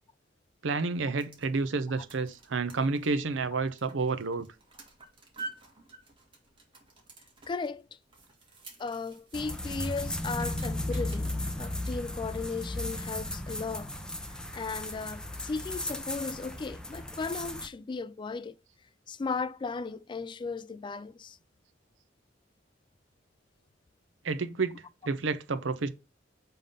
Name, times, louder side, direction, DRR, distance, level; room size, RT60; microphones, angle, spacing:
voice 1, 0.6-4.5 24.2-25.9, right 4 dB, 80° right, 0.6 m, -30 dB
sound 1, 0.9-11.4, right 3 dB, 25° right, 1.9 m, -50 dB
voice 2, 7.5-7.9 8.8-13.9 14.5-18.5 19.1-21.4, left 4 dB, 25° left, 0.3 m, -36 dB
sound 2, 9.3-17.7, left 1 dB, 5° left, 0.7 m, -35 dB
5.5 x 3.7 x 5.3 m
head